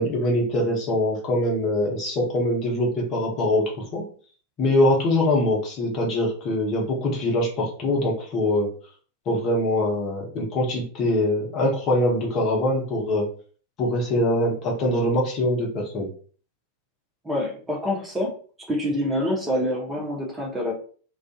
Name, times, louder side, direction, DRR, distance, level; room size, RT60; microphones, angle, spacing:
voice 1, 0.0-4.1 4.6-8.7 9.3-13.3 13.8-16.1, left 1 dB, 35° left, -2 dB, 0.8 m, -23 dB
voice 2, 17.2-18.3 18.7-20.7, left 1 dB, 10° right, -3 dB, 0.7 m, -26 dB
2.4 x 2.4 x 2.3 m, 0.42 s
figure-of-eight pair, 90°, 0 cm